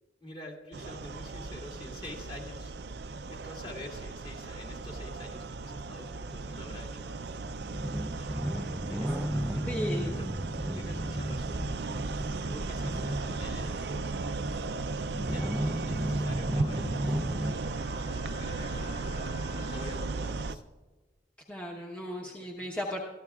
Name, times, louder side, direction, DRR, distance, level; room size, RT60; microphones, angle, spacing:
voice 1, 0.2-2.7 3.0-7.3 8.1-9.1 9.5-10.3 10.7-14.0 15.0-17.6 17.9-20.6 22.2-22.8, left 1 dB, 30° left, 0 dB, 2.1 m, -48 dB
sound 1, 0.7-20.5, right 3 dB, 65° right, 0.5 m, -36 dB
sound 2, 5.2-17.5, equal, 10° right, 0.5 m, -35 dB
voice 2, 9.7-10.1 21.5-23.0, equal, 5° left, -2 dB, 1.0 m, -36 dB
Trumpet, 12.4-20.2, left 5 dB, 60° left, 1.6 m, -53 dB
23.5 x 14.0 x 2.4 m, 1.2 s
head